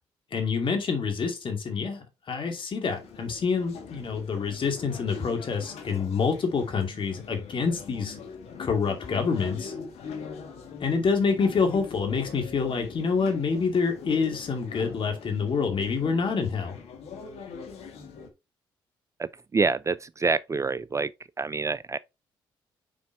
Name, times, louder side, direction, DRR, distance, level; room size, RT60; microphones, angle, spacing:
voice 1, 0.3-8.1 8.6-9.7 10.8-16.8, left 5 dB, 50° left, 2.4 m, -27 dB
sound 1, 2.9-18.3, left 5 dB, 70° left, 1.6 m, -42 dB
voice 2, 19.2-21.1 21.4-22.0, right 4 dB, 25° right, 0.4 m, -27 dB
5.4 x 5.0 x 4.5 m
hypercardioid pair, 50°, 11 cm